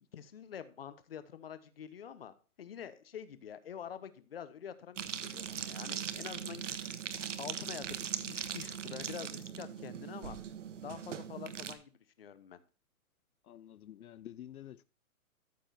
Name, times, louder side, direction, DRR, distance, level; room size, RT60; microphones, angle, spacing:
voice 1, 0.1-7.0 7.4-10.4 10.8-12.6, left 8 dB, 40° left, 1.0 m, -47 dB
sound 1, 5.0-11.7, right 8 dB, 55° right, 1.1 m, -40 dB
voice 2, 13.5-14.8, left 11 dB, 75° left, 0.6 m, -49 dB
13.5 x 7.1 x 2.7 m
hypercardioid pair, 175°, 44 cm